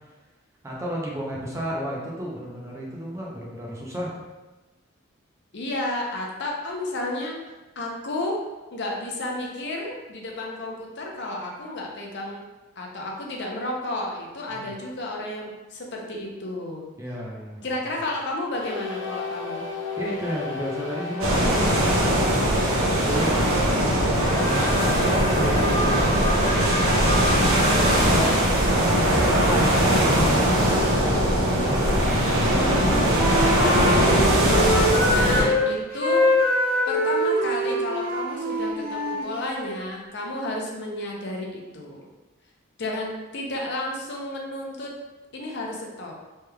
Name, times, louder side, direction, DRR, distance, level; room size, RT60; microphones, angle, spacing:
voice 1, 0.6-4.1 14.5-14.7 17.0-17.6 20.0-28.5 28.8-33.1, equal, 15° right, -4 dB, 0.5 m, -33 dB
voice 2, 5.5-7.4 7.8-8.4 8.7-12.4 12.8-16.9 17.6-19.7 35.0-36.3 36.9-42.1 42.8-44.9 45.3-46.1, left 1 dB, 55° left, -1 dB, 0.6 m, -32 dB
sound 1, 18.5-22.4 24.0-28.2 30.5-35.4, left 2 dB, 25° left, 1.0 m, -32 dB
sound 2, 21.2-35.4, right 1 dB, 80° right, 0.7 m, -20 dB
Wind instrument woodwind instrument, 32.3-35.6 35.9-39.7, equal, 40° right, 1.4 m, -24 dB
3.2 x 3.2 x 2.2 m, 1.1 s
head